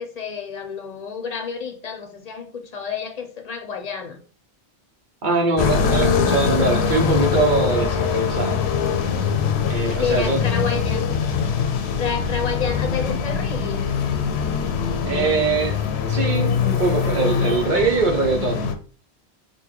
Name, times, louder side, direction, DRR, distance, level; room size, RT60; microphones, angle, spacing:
voice 1, 0.0-4.2 9.0-11.1 12.0-13.9, left 6 dB, 45° left, 0.7 m, -30 dB
voice 2, 5.2-8.6 9.7-10.4 15.0-18.7, right 4 dB, 50° right, 0.9 m, -22 dB
sound 1, 5.6-18.7, left 6 dB, 85° left, 0.9 m, -22 dB
4.0 x 2.2 x 4.5 m
omnidirectional pair, 1.1 m